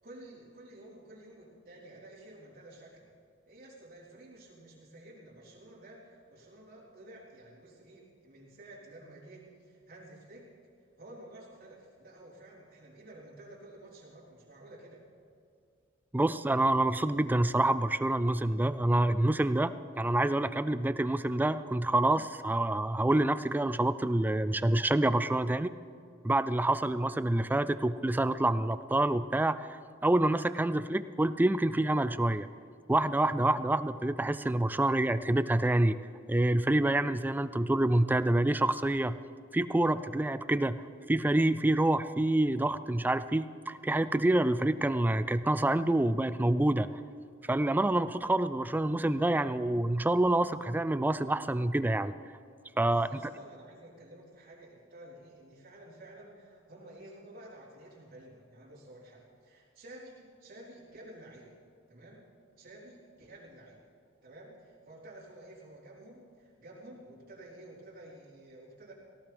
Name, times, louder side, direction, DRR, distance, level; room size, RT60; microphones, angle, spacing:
voice 1, 0.0-3.1 3.4-10.5 11.0-15.0 52.8-61.5 61.9-62.3 62.6-63.8 64.2-68.9, right 1 dB, 45° right, -8 dB, 3.8 m, -51 dB
voice 2, 16.1-25.7 26.2-32.5 32.9-36.0 36.3-39.2 39.5-40.8 41.1-46.9 47.5-52.1 52.8-53.3, right 1 dB, 10° right, 13 dB, 0.3 m, -27 dB
18.5 x 17.0 x 3.4 m, 2.3 s
head